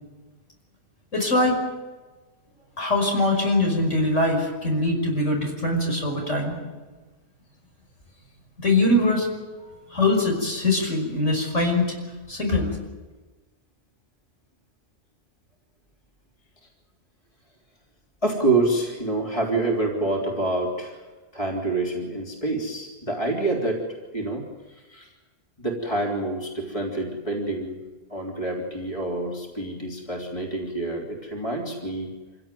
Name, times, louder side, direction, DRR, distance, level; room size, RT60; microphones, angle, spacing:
voice 1, 1.1-1.6 2.8-6.6 8.6-9.3 9.9-11.9 12.3-12.7, left 2 dB, 75° left, 1 dB, 6.2 m, -22 dB
voice 2, 18.2-21.0 21.3-23.8 24.1-24.4 24.9-25.1 25.6-27.8 28.1-32.1, right 2 dB, 25° left, -2 dB, 3.6 m, -27 dB
26.5 x 16.5 x 9.3 m, 1.3 s
omnidirectional pair, 1.3 m